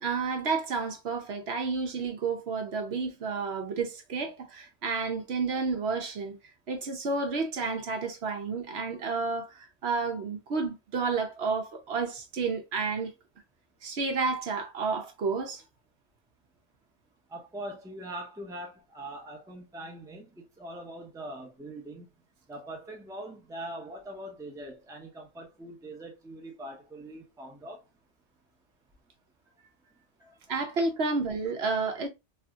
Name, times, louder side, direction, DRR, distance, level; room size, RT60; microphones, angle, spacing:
voice 1, 0.0-6.4 6.7-13.1 13.8-15.6 30.5-32.1, right 4 dB, 65° right, 0.9 m, -31 dB
voice 2, 17.3-22.1 22.5-27.8 30.2-30.4, right 1 dB, 5° right, 0.6 m, -42 dB
3.3 x 2.7 x 2.3 m
omnidirectional pair, 1.2 m